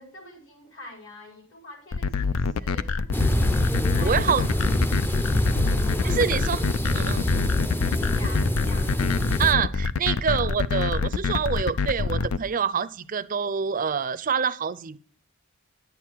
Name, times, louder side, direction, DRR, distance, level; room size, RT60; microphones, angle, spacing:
voice 1, 0.0-3.5 3.9-4.6 6.0-6.4 7.8-9.0, left 1 dB, 65° left, 0 dB, 4.5 m, -45 dB
sound 1, 1.9-12.4, left 4 dB, 85° left, 0.5 m, -25 dB
sound 2, 3.1-9.5, equal, 10° left, 0.5 m, -26 dB
voice 2, 4.0-4.4 6.0-6.6 6.9-7.2 9.4-15.0, right 6 dB, 40° right, 16 dB, 0.5 m, -26 dB
10.5 x 7.7 x 4.6 m, 0.43 s
head